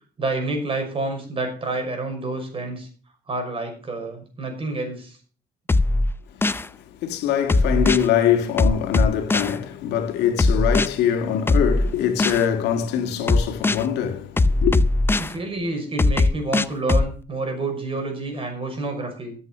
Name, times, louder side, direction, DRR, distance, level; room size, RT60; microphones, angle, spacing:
voice 1, 0.2-2.9 3.3-5.2 15.2-19.4, right 2 dB, 30° right, 5.9 m, -28 dB
sound 1, 5.7-6.7 7.5-8.1 8.6-9.5 10.4-10.9 11.5-12.4 13.3-13.8 14.4-15.3 16.0-17.1, left 2 dB, 15° left, 0.5 m, -19 dB
voice 2, 7.0-14.8, left 9 dB, 85° left, 1.9 m, -23 dB
14.0 x 8.3 x 6.0 m
cardioid pair, 110°, 17 cm